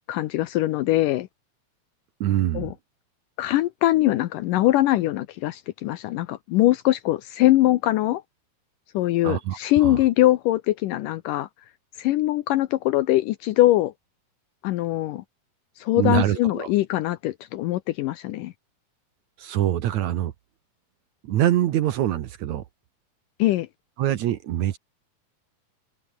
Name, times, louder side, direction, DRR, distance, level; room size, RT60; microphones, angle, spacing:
voice 1, 0.1-1.3 2.5-2.7 3.4-8.2 8.9-11.5 12.0-13.9 14.6-15.2 15.8-18.5 23.4-23.7, left 16 dB, 75° left, 2.3 m, -22 dB
voice 2, 2.2-2.7 9.2-10.0 15.9-16.7 19.4-20.3 21.2-22.6 24.0-24.8, right 12 dB, 65° right, 2.1 m, -24 dB
omnidirectional pair, 4.0 m